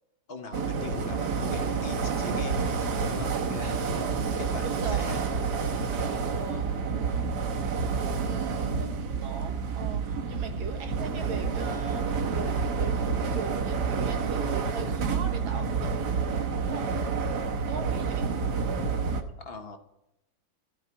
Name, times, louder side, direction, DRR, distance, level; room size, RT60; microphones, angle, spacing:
voice 1, 0.3-2.7 3.1-4.0 4.4-5.2 19.4-19.8, left 3 dB, 40° left, 6 dB, 0.9 m, -41 dB
sound 1, 0.5-19.2, right 5 dB, 60° right, 1.5 m, -29 dB
voice 2, 3.6-4.3 4.6-5.2 6.2-6.8 8.2-13.0 13.3-16.2 16.6-16.9 17.7-18.4, right 5 dB, 80° right, 4 dB, 2.1 m, -40 dB
14.5 x 4.9 x 9.3 m, 0.88 s
omnidirectional pair, 2.2 m